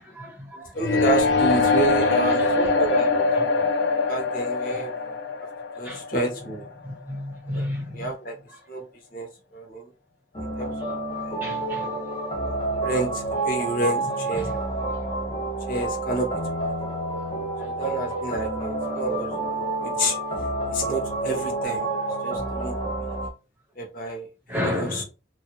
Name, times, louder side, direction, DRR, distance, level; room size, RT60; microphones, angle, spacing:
voice 1, 0.0-0.7 2.3-2.6 4.7-4.8 5.8-6.0 6.8-8.1 11.4-11.9 14.3-14.5 24.5-25.0, left 1 dB, 10° right, 1.4 m, -32 dB
voice 2, 0.7-3.5 4.1-4.9 5.8-6.7 7.5-7.7 7.9-8.3 8.7-8.8 9.1-9.3 9.5-9.8 10.6-11.0 11.3-11.7 12.8-14.7 15.7-16.3 17.6-20.2 20.7-21.9 22.2-22.8 23.8-24.3 24.6-25.0, right 2 dB, 50° left, 1.1 m, -29 dB
sound 1, 0.8-6.7, left 4 dB, 80° left, 0.5 m, -23 dB
sound 2, 10.3-23.3, right 2 dB, 30° left, 0.8 m, -29 dB
3.0 x 2.6 x 2.9 m
head